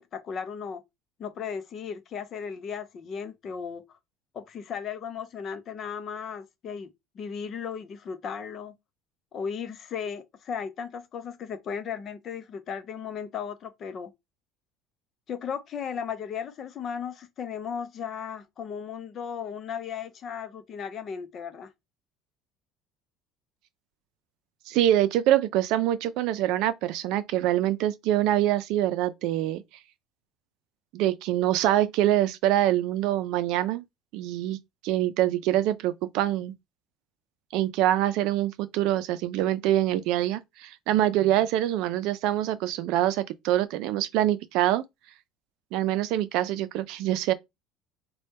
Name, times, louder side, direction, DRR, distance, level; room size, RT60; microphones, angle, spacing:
voice 1, 0.1-0.8 1.2-4.0 4.3-6.9 7.1-8.8 9.3-14.1 15.3-21.7, left 7 dB, 40° left, 0.6 m, -36 dB
voice 2, 24.7-29.6 30.9-33.8 34.1-36.5 37.5-44.8 45.7-47.3, right 13 dB, 65° right, 0.5 m, -25 dB
3.4 x 2.3 x 4.1 m
cardioid pair, 140°, 0 cm